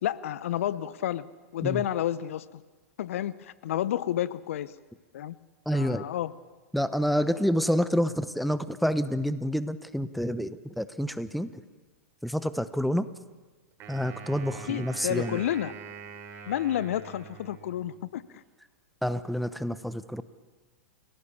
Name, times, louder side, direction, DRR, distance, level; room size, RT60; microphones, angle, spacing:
voice 1, 0.0-1.3 1.5-2.6 3.0-4.7 5.1-5.4 5.7-6.3 14.6-15.7 16.5-18.4, left 11 dB, 65° left, 17 dB, 0.8 m, -30 dB
voice 2, 5.7-6.0 6.7-11.5 12.2-13.1 13.9-15.4 19.0-20.2, equal, ahead, 13 dB, 1.0 m, -28 dB
Wind instrument woodwind instrument, 13.8-18.1, right 7 dB, 35° right, 5.1 m, -44 dB
30.0 x 17.0 x 7.1 m, 1.3 s
hypercardioid pair, 105°, 8 cm